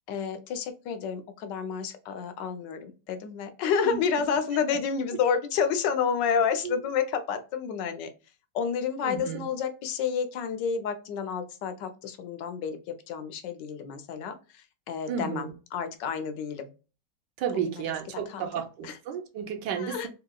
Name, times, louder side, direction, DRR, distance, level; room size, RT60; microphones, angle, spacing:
voice 1, 0.1-8.1 8.5-12.8 13.1-16.7 17.7-17.8 18.1-18.5 18.8-19.0 19.8-20.1, left 6 dB, 85° left, 1.3 m, -30 dB
voice 2, 9.0-9.4 15.1-15.5 17.4-20.1, right 8 dB, 80° right, 1.3 m, -32 dB
3.7 x 2.8 x 2.2 m
omnidirectional pair, 1.9 m